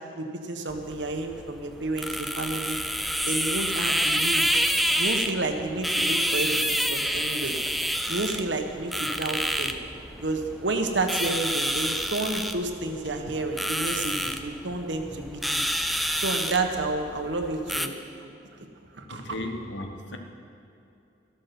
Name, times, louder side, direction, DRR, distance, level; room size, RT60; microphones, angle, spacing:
voice 1, 0.1-2.8 3.3-4.4 5.0-7.5 8.1-9.7 10.2-15.6 16.1-17.9 18.2-18.4 18.9-19.3, right 2 dB, 80° right, 4 dB, 1.4 m, -30 dB
sound 1, 0.7-17.9, equal, ahead, 0.5 m, -28 dB
voice 2, 19.1-20.2, left 1 dB, 85° left, 4 dB, 1.5 m, -36 dB
14.0 x 12.5 x 6.0 m, 2.6 s
head